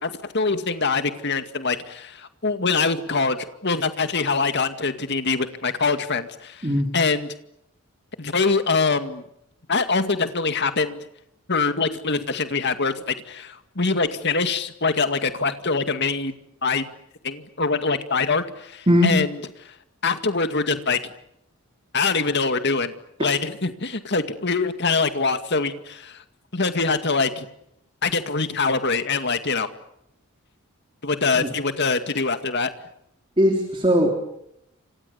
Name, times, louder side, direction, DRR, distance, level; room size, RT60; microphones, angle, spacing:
voice 1, 0.0-6.7 6.9-7.3 8.2-9.2 9.7-11.0 11.5-16.3 16.6-16.9 17.2-19.3 20.0-21.0 21.9-22.9 23.2-26.2 26.5-27.5 28.0-29.7 31.0-32.7, left 4 dB, 50° left, 9 dB, 2.2 m, -24 dB
voice 2, 33.4-34.2, equal, 25° right, 4 dB, 3.5 m, -19 dB
30.0 x 26.5 x 7.1 m, 0.77 s
head